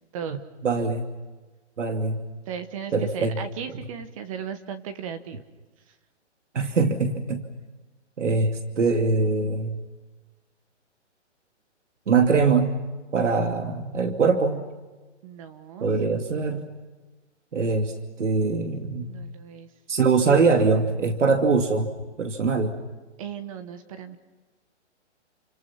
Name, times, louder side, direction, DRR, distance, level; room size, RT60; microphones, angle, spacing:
voice 1, 0.3-1.1 1.8-2.2 2.9-3.4 6.5-7.4 8.2-9.8 12.1-12.8 13.1-14.6 15.8-16.7 17.5-19.1 19.9-21.9 22.2-22.8, right 4 dB, 90° right, 5 dB, 2.7 m, -23 dB
voice 2, 2.5-5.4 15.2-15.9 19.1-19.7 23.2-24.2, right 7 dB, 30° right, 9 dB, 1.3 m, -36 dB
30.0 x 27.0 x 5.9 m, 1.2 s
hypercardioid pair, 160°, 35 cm